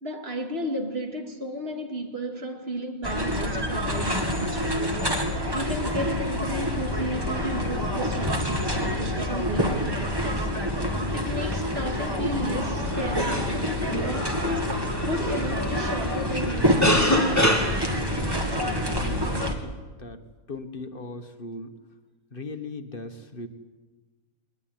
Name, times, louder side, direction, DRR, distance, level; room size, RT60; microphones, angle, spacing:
voice 1, 0.0-4.9 5.5-10.5 11.1-17.4, equal, 45° right, 2.7 m, -33 dB
sound 1, 3.0-19.5, equal, 15° right, 2.3 m, -27 dB
sound 2, 6.6-19.5, left 1 dB, 10° left, 2.2 m, -30 dB
voice 2, 19.2-19.5 20.0-20.2 20.5-21.7 22.3-23.5, left 3 dB, 40° left, 1.6 m, -38 dB
21.0 x 20.5 x 9.3 m
omnidirectional pair, 1.5 m